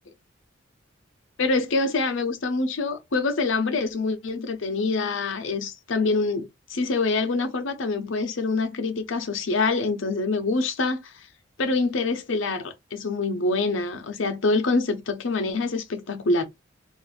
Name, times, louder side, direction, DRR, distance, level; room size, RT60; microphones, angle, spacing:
voice 1, 1.4-11.1 11.6-16.5, left 3 dB, 70° left, 0.7 m, -25 dB
2.5 x 2.5 x 3.9 m
head